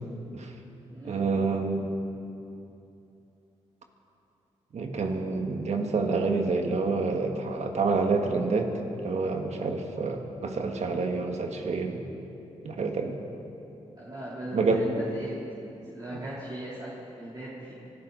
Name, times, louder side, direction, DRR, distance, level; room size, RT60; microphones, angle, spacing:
voice 1, 1.0-1.9 4.7-8.7 9.0-12.0 12.6-13.2 14.5-14.8, right 4 dB, 65° right, 3 dB, 1.8 m, -28 dB
voice 2, 14.0-15.4 15.8-17.7, right 1 dB, 35° right, -8 dB, 3.2 m, -38 dB
25.0 x 12.5 x 4.0 m, 2.8 s
cardioid pair, 60°, 12 cm